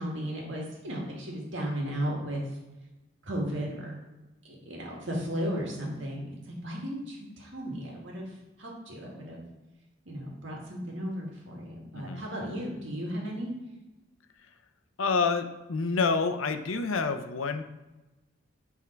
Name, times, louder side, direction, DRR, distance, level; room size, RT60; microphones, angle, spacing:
voice 1, 0.0-2.4 3.2-4.0 4.4-8.3 8.6-9.4 10.1-13.5, equal, 65° right, -2 dB, 2.0 m, -35 dB
voice 2, 15.0-17.6, left 4 dB, 85° left, 9 dB, 0.6 m, -28 dB
9.2 x 3.7 x 4.5 m, 1.1 s
head